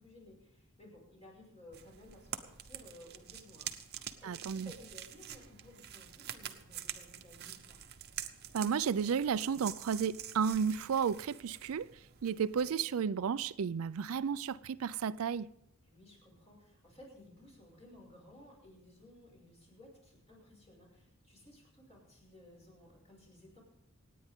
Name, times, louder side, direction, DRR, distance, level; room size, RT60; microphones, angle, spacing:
voice 1, 0.0-7.8 15.8-23.6, left 1 dB, 30° left, 6.0 m, -57 dB
sound 1, 1.7-12.7, right 10 dB, 50° right, 0.9 m, -47 dB
voice 2, 4.2-4.7 8.5-11.9 12.2-15.5, right 7 dB, 75° right, 0.4 m, -33 dB
27.0 x 9.4 x 3.7 m
head